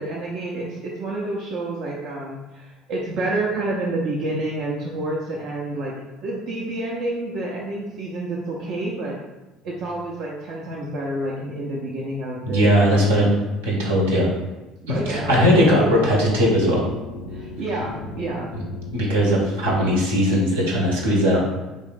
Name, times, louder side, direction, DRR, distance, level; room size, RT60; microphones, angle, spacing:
voice 1, 0.0-5.9 6.2-9.2 9.6-12.7 13.0-13.3 14.8-15.4 15.7-16.1 17.3-18.5, right 2 dB, 55° right, -4 dB, 0.6 m, -29 dB
voice 2, 12.5-13.3 13.6-14.3 14.9-16.8 18.9-21.5, equal, 80° right, -3 dB, 0.9 m, -19 dB
sound 1, 15.0-20.0, left 3 dB, 80° left, 0.4 m, -35 dB
3.6 x 2.6 x 3.7 m, 1.1 s
figure-of-eight pair, 60°, 0 cm